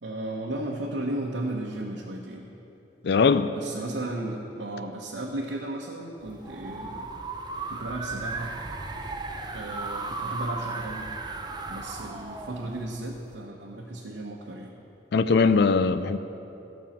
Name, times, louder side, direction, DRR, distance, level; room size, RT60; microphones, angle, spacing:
voice 1, 0.0-2.5 3.4-7.1 7.7-8.5 9.5-11.1 11.7-14.7, right 1 dB, 90° right, -2 dB, 0.9 m, -34 dB
voice 2, 3.0-3.5 15.1-16.2, left 4 dB, 65° left, 11 dB, 0.4 m, -21 dB
sound 1, 6.2-13.4, right 3 dB, 25° right, 0.6 m, -36 dB
14.0 x 5.4 x 7.3 m, 2.9 s
head